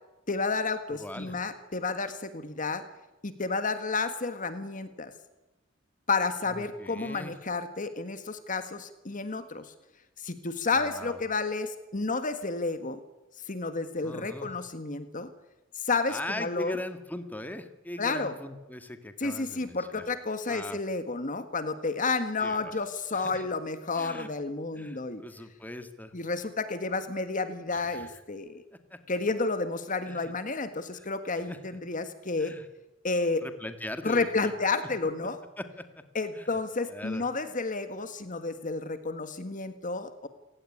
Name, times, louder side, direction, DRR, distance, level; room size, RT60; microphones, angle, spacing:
voice 1, 0.3-2.8 3.2-5.1 6.1-9.7 10.2-13.0 13.5-15.3 15.7-16.8 18.0-18.3 19.2-25.2 26.1-28.6 29.1-32.5 33.0-33.4 34.0-35.4 36.1-40.3, left 3 dB, 45° left, 10 dB, 1.7 m, -31 dB
voice 2, 0.9-1.4 6.5-7.3 10.7-11.2 14.0-14.5 16.1-20.1 20.5-20.8 22.4-22.8 23.1-23.4 23.9-24.3 24.7-26.1 27.7-28.2 28.9-29.0 30.0-30.3 30.9-31.1 31.5-31.6 32.4-32.7 33.4-34.5 35.6-36.0 36.3-36.5 36.9-37.3, left 1 dB, 10° left, 8 dB, 1.9 m, -40 dB
28.5 x 17.5 x 9.9 m, 1.0 s
head